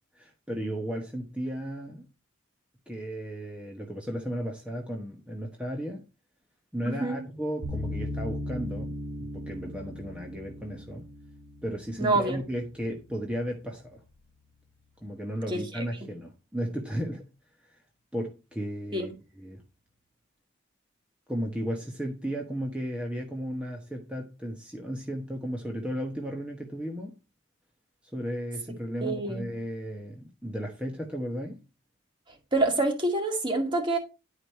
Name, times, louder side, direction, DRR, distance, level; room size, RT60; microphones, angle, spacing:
voice 1, 0.1-2.1 2.9-6.0 6.7-11.0 11.6-14.0 15.0-17.3 17.7-17.8 18.1-19.6 21.3-27.2 28.1-31.6, equal, 5° right, 1.0 m, -34 dB
voice 2, 6.9-7.2 12.0-12.4 15.5-15.8 18.9-19.1 29.0-29.4 32.5-34.0, right 2 dB, 25° right, 2.1 m, -27 dB
sound 1, 7.6-12.7, left 1 dB, 90° right, 4.0 m, -37 dB
11.0 x 5.0 x 4.4 m
head